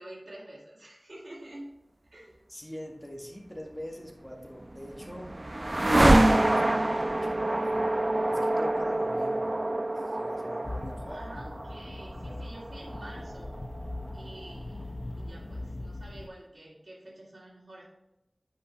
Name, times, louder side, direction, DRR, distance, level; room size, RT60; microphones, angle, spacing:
voice 1, 0.0-1.7 2.1-2.4 11.0-13.6 14.1-14.8 15.2-17.9, right 1 dB, 60° right, -10 dB, 2.9 m, -47 dB
voice 2, 2.5-5.4 6.2-7.9 8.2-9.6 10.0-11.2 12.3-12.7, equal, 15° left, 0 dB, 1.8 m, -43 dB
sound 1, 4.5-14.5, right 1 dB, 40° right, 0.4 m, -27 dB
sound 2, 10.6-16.3, left 2 dB, 55° left, 0.6 m, -40 dB
9.9 x 5.7 x 3.4 m, 0.92 s
wide cardioid pair, 40°, 0 cm